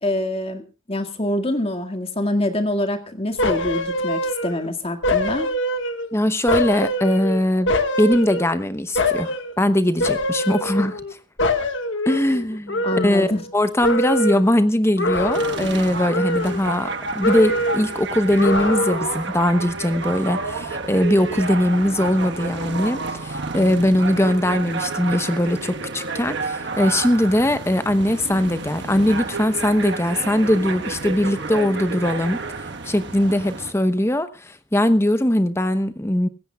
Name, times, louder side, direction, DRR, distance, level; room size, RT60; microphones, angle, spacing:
voice 1, 0.0-5.5 12.8-13.4, left 1 dB, 25° left, 1.9 m, -25 dB
sound 1, 3.4-4.7 5.0-6.1 6.5-8.6 8.9-9.5 10.0-11.1 11.4-13.5 13.8-14.5 15.0-15.8 16.1-16.9 17.2-17.9 18.4-19.2 19.5-19.7, left 1 dB, 60° left, 1.6 m, -24 dB
voice 2, 6.1-7.7 8.0-11.0 12.1-13.3 13.5-32.4 32.8-36.3, left 1 dB, 10° left, 0.9 m, -20 dB
sound 2, 15.3-33.7, right 3 dB, 55° right, 1.4 m, -30 dB
24.5 x 14.5 x 2.4 m
head